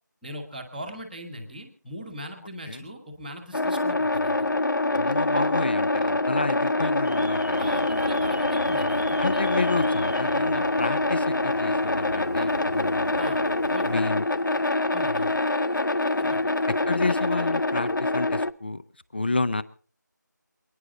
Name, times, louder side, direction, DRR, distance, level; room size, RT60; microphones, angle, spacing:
voice 1, 0.2-4.5 7.6-9.4 12.3-12.5 13.2-13.4 13.7-14.1 14.9-15.3 16.2-16.5, equal, ahead, -9 dB, 1.1 m, -40 dB
sound 1, 3.5-18.5, left 2 dB, 80° left, 0.8 m, -25 dB
voice 2, 4.9-7.7 9.2-13.1 13.8-14.3 16.9-18.8 19.1-19.6, left 3 dB, 30° left, 15 dB, 0.7 m, -30 dB
Alarm, 7.0-14.0, right 2 dB, 60° right, 0.8 m, -39 dB
28.0 x 10.0 x 3.8 m, 0.41 s
figure-of-eight pair, 170°, 10 cm